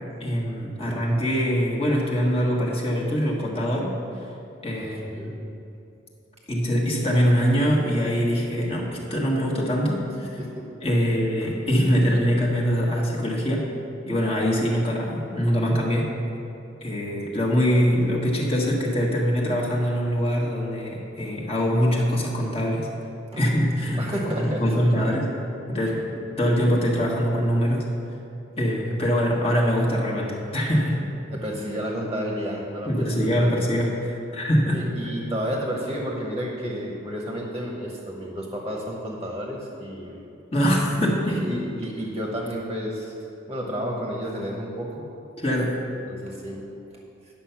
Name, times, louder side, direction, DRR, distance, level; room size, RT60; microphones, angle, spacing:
voice 1, 0.2-3.9 4.6-5.4 6.5-10.4 10.8-13.7 14.1-16.1 16.8-22.9 23.4-25.3 25.7-26.1 26.4-27.8 28.6-31.0 32.8-34.8 40.5-41.4 45.4-45.8, equal, 30° left, -3 dB, 1.5 m, -23 dB
voice 2, 4.8-5.3 10.4-10.5 23.3-23.4 24.0-24.6 25.0-25.2 31.3-33.3 34.7-40.2 41.2-43.1 43.5-45.0 46.1-46.6 46.9-47.0, equal, 20° right, -2 dB, 1.1 m, -31 dB
10.0 x 6.9 x 5.8 m, 2.7 s
head